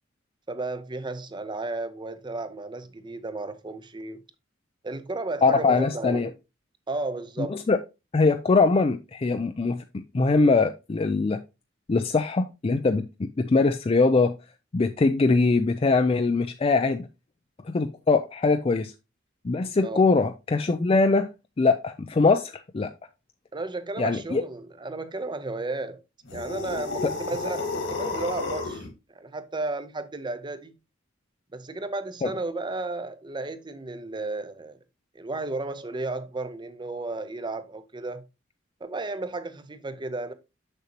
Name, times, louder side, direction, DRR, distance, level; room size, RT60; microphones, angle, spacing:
voice 1, 0.5-4.2 4.8-6.3 6.9-7.6 19.8-20.1 23.5-26.0 26.3-30.7 31.5-34.8 35.1-38.3 38.8-40.3, right 2 dB, 25° right, 0.7 m, -33 dB
voice 2, 5.4-6.3 7.4-7.8 8.1-9.8 10.1-11.4 11.9-14.3 14.7-17.1 17.7-18.9 19.4-21.3 21.6-22.9 24.0-24.4 32.2-32.3, left 3 dB, 30° left, 0.4 m, -22 dB
sound 1, 26.3-28.9, left 3 dB, 75° left, 2.0 m, -31 dB
6.5 x 6.3 x 2.9 m
head